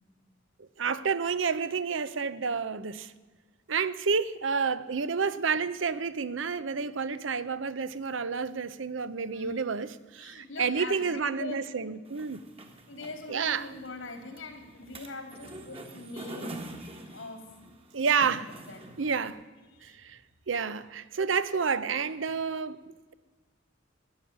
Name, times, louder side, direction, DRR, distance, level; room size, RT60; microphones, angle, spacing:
voice 1, 0.6-3.1 3.7-12.4 13.3-13.7 17.9-18.5 19.0-19.4 19.8-20.2 20.5-23.1, right 5 dB, 80° right, 0.7 m, -30 dB
voice 2, 10.2-11.7 12.9-17.5 18.7-18.8 19.7-20.0, left 3 dB, 85° left, 2.8 m, -42 dB
sound 1, 12.1-19.3, right 2 dB, 30° right, 1.5 m, -45 dB
14.0 x 9.5 x 8.6 m
head